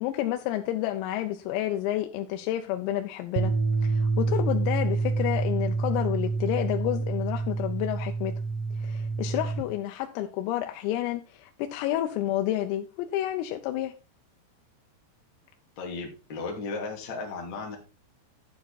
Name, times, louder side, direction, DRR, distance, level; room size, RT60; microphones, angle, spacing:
voice 1, 0.0-3.5 3.8-8.3 8.8-13.9, left 13 dB, 90° left, 5 dB, 3.5 m, -30 dB
sound 1, 3.4-9.6, right 3 dB, 85° right, 3.7 m, -27 dB
voice 2, 15.8-17.8, left 4 dB, 35° left, 0 dB, 2.1 m, -35 dB
11.5 x 7.2 x 4.1 m, 0.32 s
omnidirectional pair, 6.0 m